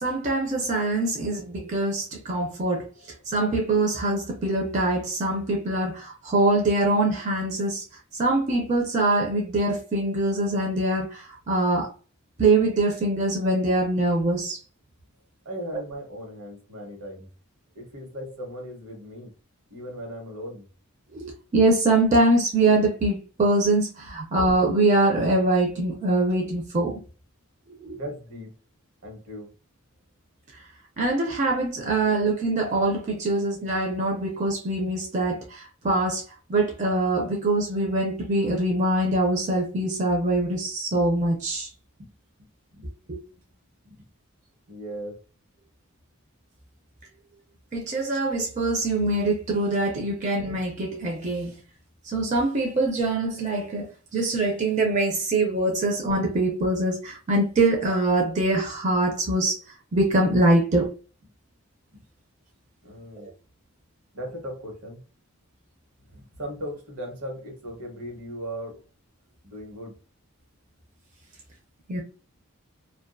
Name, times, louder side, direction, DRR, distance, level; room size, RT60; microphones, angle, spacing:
voice 1, 0.0-7.8 8.1-11.9 12.4-14.6 21.1-27.0 27.7-28.0 31.0-36.2 36.5-41.7 43.1-43.2 47.7-51.6 52.0-59.6 59.9-60.9 63.2-63.3 71.9-72.0, right 2 dB, 35° right, 0.4 m, -23 dB
voice 2, 15.4-17.3 17.7-19.3 19.7-20.6 27.9-28.5 29.0-29.5 42.0-42.1 42.4-42.9 43.8-44.1 44.7-45.2 61.9-62.0 62.8-63.3 64.1-65.0 66.1-68.8 69.4-70.0, equal, 75° right, 1.1 m, -38 dB
2.6 x 2.2 x 2.2 m
head